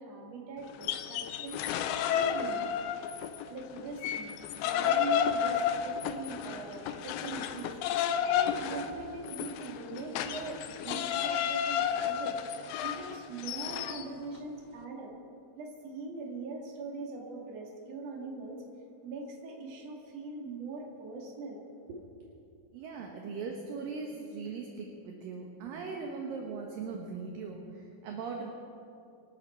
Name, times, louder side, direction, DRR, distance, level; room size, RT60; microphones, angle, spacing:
voice 1, 0.0-2.7 3.5-7.7 8.3-15.1 15.6-18.6 19.0-22.0, right 3 dB, 45° right, -1 dB, 3.0 m, -41 dB
sound 1, 0.7-3.4 3.8-14.0, left 8 dB, 80° left, 2.5 m, -31 dB
voice 2, 22.7-28.5, right 4 dB, 70° right, 1 dB, 2.6 m, -39 dB
25.0 x 12.5 x 4.5 m, 2.8 s
omnidirectional pair, 4.7 m